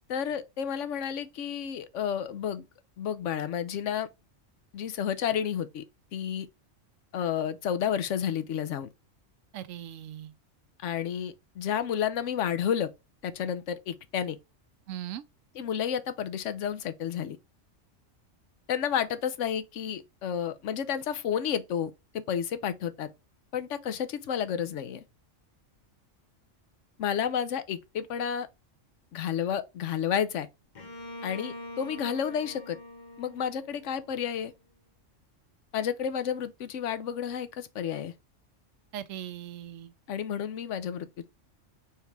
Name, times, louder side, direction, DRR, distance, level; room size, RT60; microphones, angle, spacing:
voice 1, 0.1-2.6 3.0-4.1 4.7-5.8 6.1-6.5 7.1-8.9 10.8-12.9 13.2-14.4 15.5-17.4 18.7-23.1 23.5-25.0 27.0-28.5 29.1-30.5 31.2-32.8 33.2-34.5 35.7-38.1 40.1-41.2, left 8 dB, 75° left, 1.0 m, -31 dB
voice 2, 9.5-10.3 14.9-15.2 38.9-39.9, right 11 dB, 85° right, 1.0 m, -39 dB
Bowed string instrument, 30.8-34.5, left 1 dB, 40° left, 0.9 m, -44 dB
4.5 x 3.5 x 3.3 m
omnidirectional pair, 1.3 m